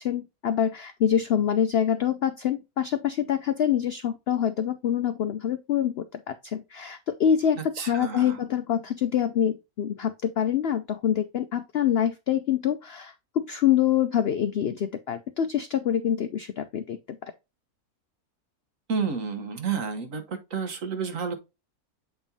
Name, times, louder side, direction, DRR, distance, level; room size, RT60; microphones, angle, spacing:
voice 1, 0.0-17.3, left 9 dB, 70° left, 0.5 m, -26 dB
voice 2, 7.6-8.4 18.9-21.3, right 6 dB, 60° right, 1.5 m, -30 dB
8.1 x 5.1 x 2.7 m
omnidirectional pair, 1.6 m